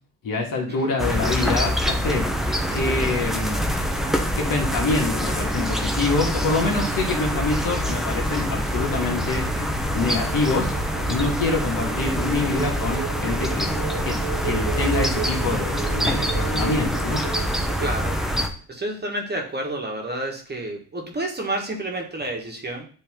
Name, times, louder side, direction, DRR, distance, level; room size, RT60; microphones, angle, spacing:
voice 1, 0.2-2.3 2.7-3.6 4.4-9.7 9.9-10.7 11.1-14.2 14.4-17.3, left 3 dB, 50° left, 0 dB, 2.2 m, -26 dB
sound 1, 1.0-18.5, equal, ahead, 0.9 m, -25 dB
sound 2, 9.6-18.5, right 11 dB, 70° right, 0.8 m, -35 dB
voice 2, 17.8-18.2 18.7-22.9, right 1 dB, 25° right, 1 dB, 1.7 m, -29 dB
8.9 x 3.3 x 3.8 m, 0.42 s
supercardioid pair, 80°, 42 cm